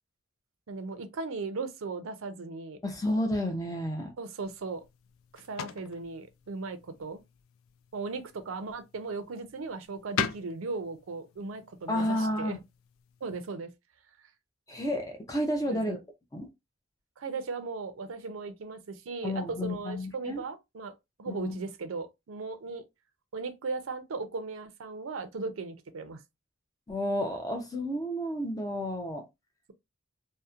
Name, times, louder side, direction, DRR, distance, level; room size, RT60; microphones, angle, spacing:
voice 1, 0.7-2.8 4.2-4.8 5.3-7.2 7.9-12.6 13.2-13.7 15.6-16.0 17.2-22.8 23.3-26.2, right 4 dB, 80° right, 0.5 m, -37 dB
voice 2, 2.8-4.1 11.9-12.6 14.7-16.0 16.3-16.5 19.2-20.4 21.3-21.6 26.9-29.3, left 1 dB, 15° left, 0.5 m, -31 dB
sound 1, 4.4-13.5, left 8 dB, 85° left, 0.3 m, -42 dB
2.7 x 2.1 x 2.4 m
head